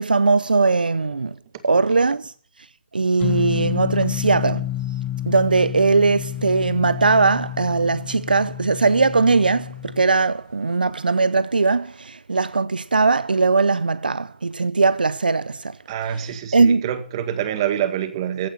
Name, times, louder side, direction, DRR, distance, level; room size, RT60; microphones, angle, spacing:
voice 1, 0.0-1.3 1.6-2.3 2.9-4.7 5.3-15.8 16.5-16.8, right 4 dB, 85° right, 0.6 m, -19 dB
sound 1, 3.2-10.1, left 13 dB, 15° left, 0.6 m, -29 dB
voice 2, 15.9-18.5, right 10 dB, 35° right, 1.8 m, -26 dB
15.5 x 8.3 x 7.1 m
figure-of-eight pair, 145°, 5 cm